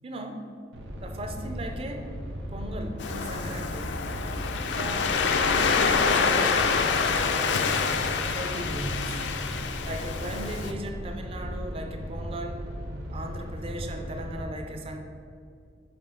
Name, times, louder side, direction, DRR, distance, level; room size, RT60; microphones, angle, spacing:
voice 1, 0.0-0.5 1.0-2.1 2.5-4.0 4.7-5.2 5.5-7.7 8.3-9.3 9.8-12.7 13.1-15.0, right 1 dB, 30° right, 5 dB, 0.5 m, -37 dB
sound 1, 0.7-14.4, equal, 85° right, 0.7 m, -37 dB
Waves surf, 3.0-10.7, left 5 dB, 75° left, 0.4 m, -26 dB
5.9 x 4.3 x 3.7 m, 2.3 s
head